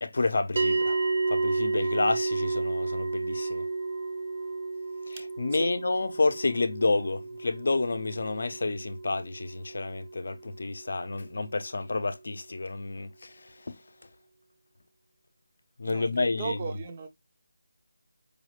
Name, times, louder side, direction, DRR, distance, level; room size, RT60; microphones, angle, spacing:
voice 1, 0.0-1.0 1.3-3.6 5.1-13.3 13.7-13.8 15.8-16.6, left 3 dB, 55° left, 0.5 m, -29 dB
sound 1, 0.6-11.1, right 3 dB, 45° right, 0.8 m, -32 dB
voice 2, 15.8-17.1, right 5 dB, 25° right, 0.5 m, -36 dB
5.0 x 2.3 x 3.1 m
figure-of-eight pair, 170°, 0 cm